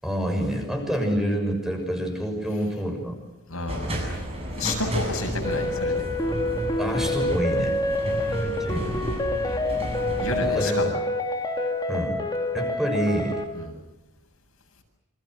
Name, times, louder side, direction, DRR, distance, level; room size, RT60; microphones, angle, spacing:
voice 1, 0.0-3.2 6.8-7.7 8.2-9.0 10.3-10.8 11.9-12.2 12.5-13.4, equal, ahead, 3 dB, 6.7 m, -27 dB
voice 2, 3.5-3.9 4.6-6.0 8.1-8.2 10.2-10.9 13.6-13.7, left 2 dB, 70° left, 3 dB, 7.4 m, -30 dB
sound 1, 3.7-10.5, equal, 25° right, 7.9 m, -32 dB
sound 2, 5.4-13.4, left 1 dB, 20° left, 3.1 m, -27 dB
28.5 x 27.0 x 6.4 m, 1.0 s
head